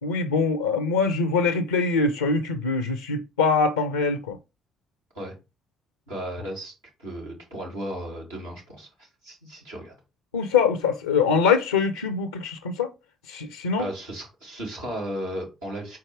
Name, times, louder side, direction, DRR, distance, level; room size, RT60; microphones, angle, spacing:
voice 1, 0.0-4.4 10.3-12.9 13.2-13.9, left 4 dB, 90° left, 0.4 m, -23 dB
voice 2, 6.1-6.7 7.0-10.0 13.8-16.0, equal, 85° right, 2.6 m, -35 dB
4.7 x 4.3 x 4.8 m
hypercardioid pair, 45°, 0 cm